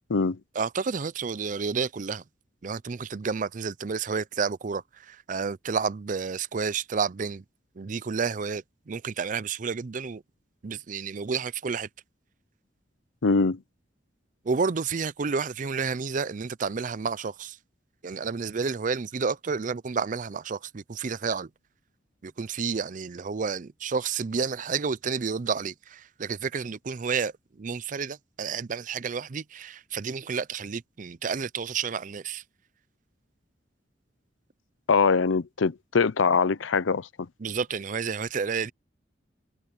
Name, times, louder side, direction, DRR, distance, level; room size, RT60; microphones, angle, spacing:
voice 1, 0.6-2.2 2.6-7.4 7.8-10.2 10.6-11.9 14.4-17.6 18.0-21.5 22.2-27.3 27.6-32.4 37.4-38.7, right 5 dB, 40° right, 0.5 m, -30 dB
voice 2, 13.2-13.6 34.9-37.3, left 4 dB, 85° left, 0.7 m, -23 dB
head